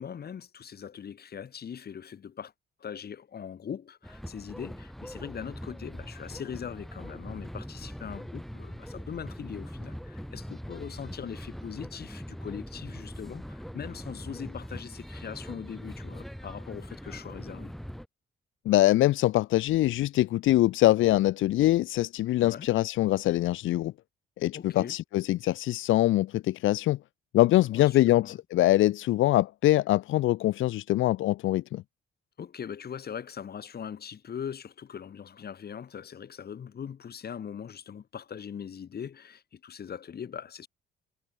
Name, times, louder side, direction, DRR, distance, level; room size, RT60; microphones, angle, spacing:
voice 1, 0.0-2.5 2.8-17.7 22.4-22.7 24.5-25.0 27.6-28.4 32.4-40.7, left 8 dB, 50° left, 4.1 m, -41 dB
sound 1, 4.0-18.1, equal, ahead, 8.0 m, -42 dB
voice 2, 18.6-23.9 24.4-27.0 27.3-31.8, left 15 dB, 85° left, 1.0 m, -23 dB
cardioid pair, 90°, 20 cm